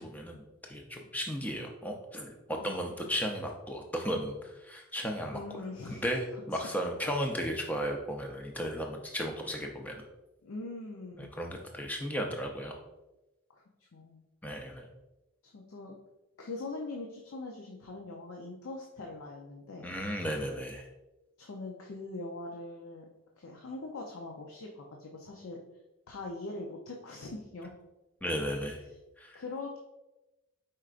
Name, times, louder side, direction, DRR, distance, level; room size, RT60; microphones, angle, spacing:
voice 1, 0.0-5.4 5.9-10.0 11.2-12.8 14.4-14.8 19.8-20.9 28.2-28.8 29.2-29.4, equal, 10° left, 2 dB, 0.5 m, -35 dB
voice 2, 5.3-6.1 6.3-6.7 10.4-11.3 13.5-14.2 15.4-15.9 16.4-19.9 21.4-23.1 23.4-25.6 26.1-27.7 29.3-29.8, left 2 dB, 90° left, 0 dB, 0.6 m, -42 dB
4.9 x 4.4 x 2.4 m, 0.99 s
head